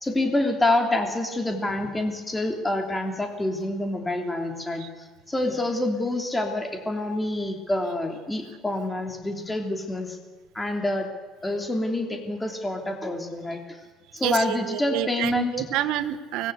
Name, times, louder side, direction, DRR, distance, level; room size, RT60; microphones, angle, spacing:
voice 1, 0.0-4.9 5.3-10.2 10.5-11.1 11.4-13.8 14.1-15.6, left 2 dB, 10° left, 4 dB, 3.3 m, -27 dB
voice 2, 14.2-16.5, right 13 dB, 75° right, 9 dB, 1.4 m, -28 dB
24.5 x 20.0 x 8.3 m, 1.3 s
cardioid pair, 150°, 0 cm